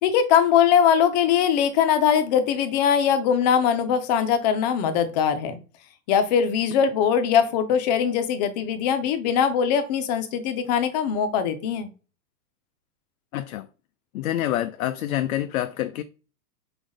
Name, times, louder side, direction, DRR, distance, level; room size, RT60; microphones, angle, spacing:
voice 1, 0.0-5.6 6.1-11.9, left 8 dB, 30° left, 0.7 m, -21 dB
voice 2, 13.3-13.7 14.1-16.0, left 13 dB, 65° left, 0.6 m, -27 dB
5.0 x 4.1 x 5.0 m
supercardioid pair, 165°, 46 cm